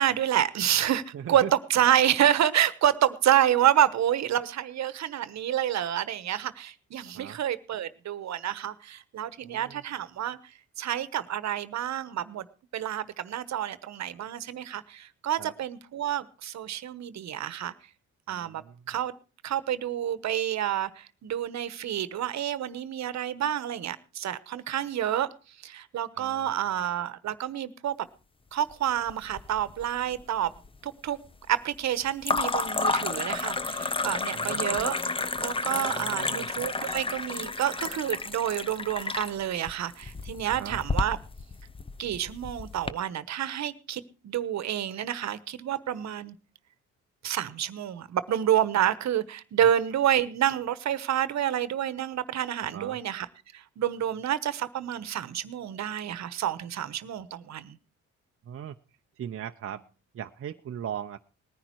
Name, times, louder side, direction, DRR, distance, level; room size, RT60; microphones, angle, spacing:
voice 1, 0.0-1.4 1.7-12.5 12.7-17.7 18.3-19.1 19.4-28.1 28.5-30.5 30.8-31.2 31.5-35.1 35.4-41.2 42.0-46.3 47.2-53.3 53.5-57.8, right 11 dB, 65° right, 16 dB, 1.1 m, -28 dB
voice 2, 1.1-1.5 7.1-7.4 9.4-9.8 15.4-15.5 18.3-18.8 26.1-26.7 34.3-34.6 35.7-36.5 40.4-40.8 52.6-53.0 58.4-58.8 59.2-59.8 60.1-61.2, right 9 dB, 45° right, 6 dB, 0.7 m, -39 dB
sound 1, 29.1-29.8 30.1-30.8 32.2-42.9, left 3 dB, 20° left, 0.7 m, -31 dB
19.0 x 10.0 x 4.6 m, 0.34 s
cardioid pair, 90°, 30 cm